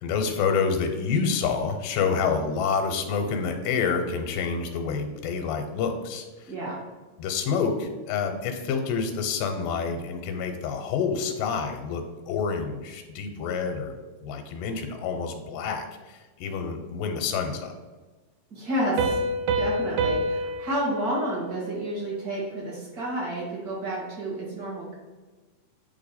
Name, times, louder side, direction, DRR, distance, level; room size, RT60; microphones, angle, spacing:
voice 1, 0.0-6.5 7.2-14.0 14.2-17.7, left 5 dB, 90° left, 5 dB, 2.3 m, -28 dB
voice 2, 6.4-6.8 18.5-19.3 19.6-24.9, right 1 dB, 40° right, -4 dB, 1.4 m, -30 dB
Piano, 19.0-22.4, right 2 dB, 80° right, 2.1 m, -28 dB
8.8 x 3.1 x 4.1 m, 1.2 s
omnidirectional pair, 3.8 m